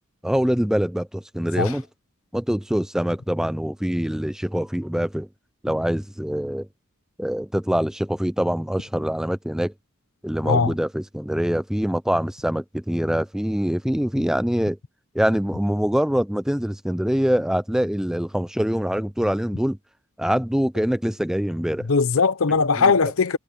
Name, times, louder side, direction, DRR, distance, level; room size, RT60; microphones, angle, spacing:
voice 1, 0.2-1.9 2.3-5.3 5.6-6.7 7.2-9.7 10.2-14.8 15.1-19.8 20.2-21.9 22.8-22.9, equal, ahead, 0.4 m, -24 dB
voice 2, 21.8-23.4, left 4 dB, 70° left, 0.7 m, -19 dB
head